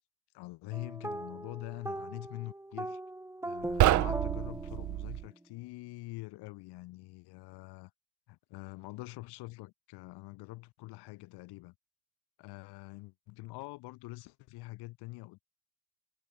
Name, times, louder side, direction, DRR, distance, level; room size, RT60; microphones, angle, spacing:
voice 1, 0.3-3.0 3.4-7.9 8.3-11.7 12.4-15.4, left 21 dB, 70° left, 6.1 m, -45 dB
sound 1, 0.7-5.3, right 1 dB, 5° right, 5.3 m, -39 dB
sound 2, 3.6-5.3, right 16 dB, 45° right, 0.7 m, -28 dB
cardioid pair, 135°, 41 cm